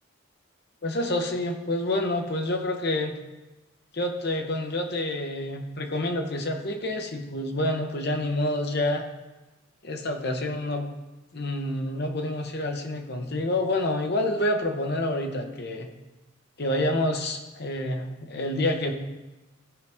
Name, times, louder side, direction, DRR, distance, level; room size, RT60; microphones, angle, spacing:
voice 1, 0.8-3.2 3.9-9.0 9.8-10.9 11.3-15.9 16.6-18.9, left 1 dB, 50° left, 4 dB, 0.9 m, -28 dB
13.5 x 4.8 x 3.6 m, 1.1 s
head